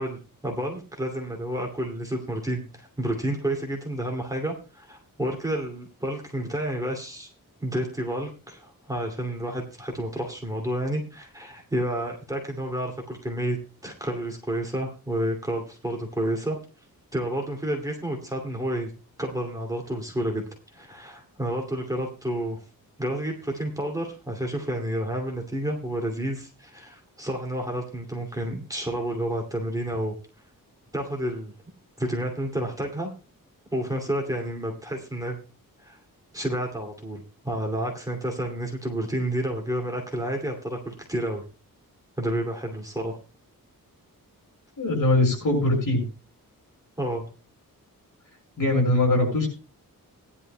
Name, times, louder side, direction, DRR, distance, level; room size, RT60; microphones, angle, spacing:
voice 1, 0.0-7.3 7.6-13.6 13.8-16.6 17.1-18.9 19.2-20.5 20.7-22.6 23.0-30.1 30.9-31.5 32.0-33.1 33.7-35.4 35.8-36.0 36.3-41.4 42.2-43.2 47.0-47.3, right 1 dB, 10° right, 0 dB, 2.4 m, -30 dB
voice 2, 44.8-46.0 48.6-49.5, left 2 dB, 65° left, 1 dB, 6.2 m, -21 dB
19.0 x 11.0 x 2.2 m, 0.32 s
wide cardioid pair, 130°, 34 cm